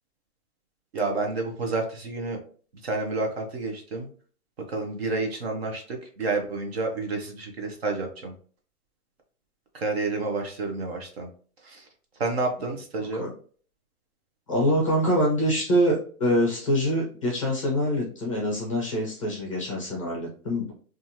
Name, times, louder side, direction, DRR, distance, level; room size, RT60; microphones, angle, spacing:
voice 1, 0.9-2.4 2.8-4.1 4.7-8.3 9.7-11.3 11.6-11.8 12.2-13.2, right 3 dB, 45° right, 2 dB, 0.6 m, -29 dB
voice 2, 13.0-13.3 14.5-20.7, equal, 25° left, -2 dB, 0.5 m, -25 dB
2.8 x 2.4 x 2.6 m, 0.44 s
hypercardioid pair, 170°, 44 cm